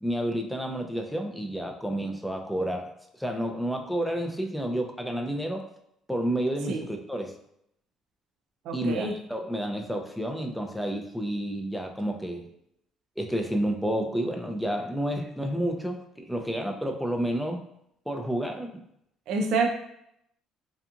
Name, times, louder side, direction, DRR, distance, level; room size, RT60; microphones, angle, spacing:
voice 1, 0.0-2.9 3.2-5.7 6.1-7.3 8.7-12.5 13.2-17.6 18.1-18.7, right 1 dB, ahead, 3 dB, 0.4 m, -30 dB
voice 2, 8.6-9.1 19.3-19.7, right 4 dB, 75° right, 3 dB, 0.4 m, -27 dB
2.8 x 2.4 x 2.4 m, 0.75 s
cardioid pair, 95°, 0 cm